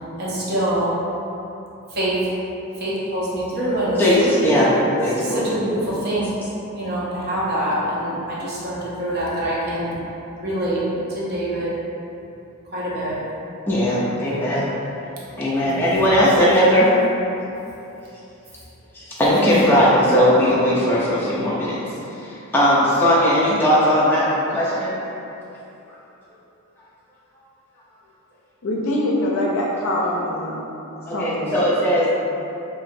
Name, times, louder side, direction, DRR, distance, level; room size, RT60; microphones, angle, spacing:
voice 1, 0.2-0.9 1.9-2.1 2.8-4.5 5.2-6.3 6.7-9.9 10.4-11.8 12.7-13.2 15.6-16.4, right 1 dB, 45° right, -7 dB, 0.6 m, -25 dB
voice 2, 4.0-4.7 5.0-5.8 13.7-14.7 15.4-16.9 18.9-21.8 22.2-24.9 31.1-32.1, equal, 10° left, -8 dB, 0.3 m, -18 dB
voice 3, 28.6-30.6 31.1-31.7, left 1 dB, 65° left, -3 dB, 0.5 m, -23 dB
2.9 x 2.5 x 2.5 m, 2.9 s
head